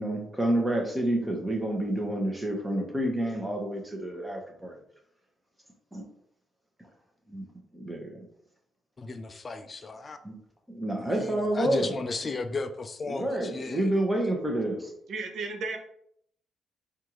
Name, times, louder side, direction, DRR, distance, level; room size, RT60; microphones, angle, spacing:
voice 1, 0.0-4.7 5.9-6.0 7.3-7.5 7.7-8.2 10.2-10.4 10.7-12.0 13.1-14.9, right 1 dB, 10° right, 1 dB, 1.0 m, -29 dB
voice 2, 9.0-10.2 11.0-13.9, left 3 dB, 35° left, 8 dB, 0.3 m, -35 dB
voice 3, 15.1-15.8, right 3 dB, 65° right, 3 dB, 0.7 m, -33 dB
4.4 x 2.5 x 3.0 m, 0.70 s
cardioid pair, 90°, 0 cm